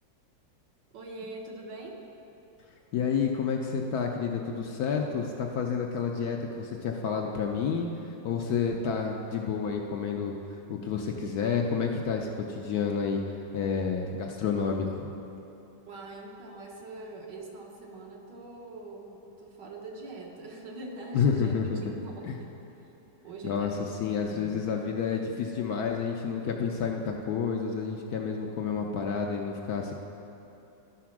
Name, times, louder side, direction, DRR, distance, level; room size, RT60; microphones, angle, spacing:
voice 1, 0.9-2.0 15.9-22.9 23.2-23.9 24.2-24.6, right 2 dB, 70° right, 0 dB, 1.7 m, -43 dB
voice 2, 2.9-7.9 8.2-10.3 10.7-13.2 13.5-15.1 21.1-21.9 22.2-22.4 23.4-23.7 24.0-30.0, left 6 dB, 70° left, 1 dB, 1.0 m, -29 dB
12.5 x 4.2 x 5.9 m, 2.9 s
omnidirectional pair, 2.0 m